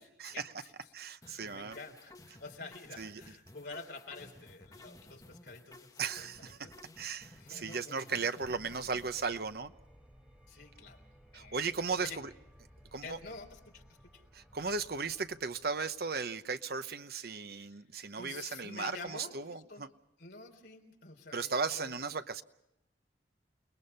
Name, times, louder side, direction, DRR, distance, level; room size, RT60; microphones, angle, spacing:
voice 1, 0.0-0.9 1.2-6.3 6.6-6.7 7.4-8.1 10.5-11.0 11.3-11.7 12.0-12.2 13.0-14.2 17.5-17.8 18.1-19.9 20.2-22.0, left 4 dB, 65° left, 3 dB, 3.6 m, -49 dB
voice 2, 0.9-1.8 3.0-3.1 6.0-6.6 7.0-9.7 11.3-12.3 12.9-13.2 14.3-19.9 21.3-22.4, right 4 dB, 60° right, 10 dB, 1.0 m, -36 dB
sound 1, 1.2-9.2, left 2 dB, 20° left, 1.6 m, -55 dB
sound 2, 7.4-16.5, equal, 5° right, 3.0 m, -60 dB
29.5 x 20.5 x 5.6 m, 0.84 s
head